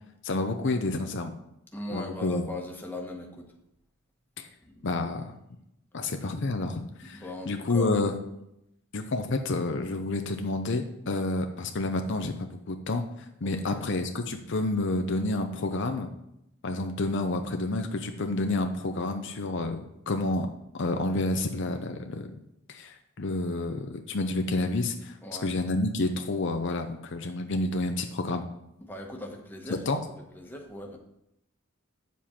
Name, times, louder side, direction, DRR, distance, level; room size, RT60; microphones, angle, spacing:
voice 1, 0.2-1.3 1.9-2.5 4.4-4.5 4.8-5.3 5.9-8.1 8.9-13.0 13.4-16.1 16.6-19.8 20.1-20.5 20.7-22.3 22.7-25.2 25.4-28.4 29.9-30.0, left 2 dB, 60° left, 6 dB, 0.7 m, -29 dB
voice 2, 1.7-3.4 4.6-4.8 7.1-8.0 13.4-13.9 25.2-25.5 28.8-29.8 30.1-31.0, left 2 dB, 10° left, 0 dB, 1.3 m, -39 dB
9.2 x 7.3 x 4.4 m, 0.82 s
head